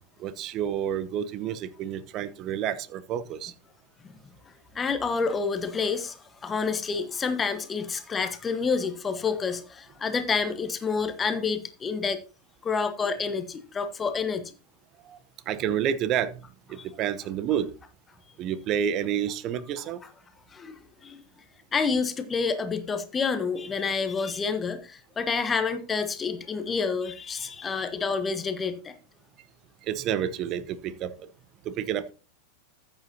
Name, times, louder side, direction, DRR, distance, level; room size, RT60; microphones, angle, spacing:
voice 1, 0.2-3.5 15.0-15.2 15.5-17.7 18.4-20.0 29.8-31.3 31.6-32.1, right 9 dB, 35° right, 0.9 m, -29 dB
voice 2, 4.7-12.2 12.6-14.5 16.7-16.9 19.8-20.1 20.5-21.2 21.7-28.9, left 5 dB, 20° left, 1.2 m, -29 dB
14.0 x 8.9 x 2.8 m
figure-of-eight pair, 90°, 0 cm